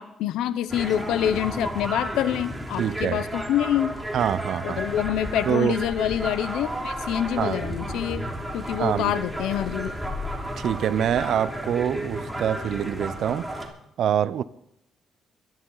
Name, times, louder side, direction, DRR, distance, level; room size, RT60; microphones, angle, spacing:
voice 1, 0.0-4.0 4.6-8.2 8.5-9.9, left 11 dB, 85° left, 0.8 m, -26 dB
sound 1, 0.7-13.7, right 1 dB, 5° right, 2.9 m, -33 dB
sound 2, 1.0-13.4, left 3 dB, 25° left, 5.3 m, -42 dB
voice 2, 2.8-3.2 4.1-4.8 5.4-5.8 7.4-7.6 8.8-9.1 10.6-13.5 14.0-14.4, right 9 dB, 70° right, 0.6 m, -25 dB
23.0 x 11.5 x 4.0 m
cardioid pair, 90°, 0 cm